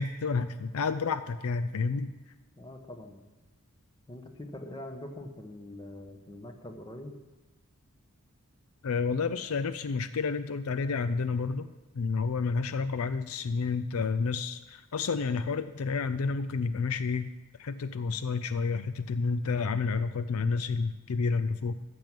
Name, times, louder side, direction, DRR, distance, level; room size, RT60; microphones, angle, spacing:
voice 1, 0.0-2.1 8.8-11.7 12.0-17.3 17.6-21.8, left 4 dB, 70° left, 12 dB, 0.5 m, -30 dB
voice 2, 2.6-3.2 4.1-7.1, left 1 dB, 20° left, 5 dB, 1.1 m, -43 dB
14.0 x 6.2 x 7.5 m, 1.1 s
head